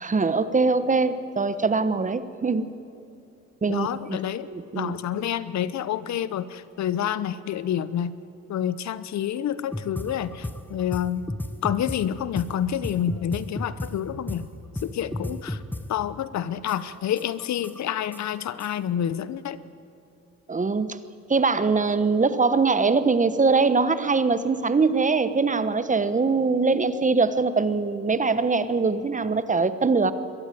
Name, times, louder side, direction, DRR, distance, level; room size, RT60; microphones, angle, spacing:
voice 1, 0.0-2.7 3.6-4.2 4.5-4.9 20.5-21.0 21.3-30.1, right 4 dB, 25° right, 13 dB, 1.0 m, -22 dB
voice 2, 3.7-4.5 4.7-8.1 8.5-11.2 11.6-14.5 14.8-15.6 15.9-19.6, left 10 dB, 65° left, 16 dB, 0.9 m, -28 dB
sound 1, 9.7-12.0 12.4-12.5 12.8-13.9 14.3-14.4 14.8-14.9 15.1-15.8 16.2-16.3 16.7-18.7, left 1 dB, 5° left, 1.1 m, -32 dB
22.0 x 13.5 x 9.2 m, 2.7 s
cardioid pair, 90°, 30 cm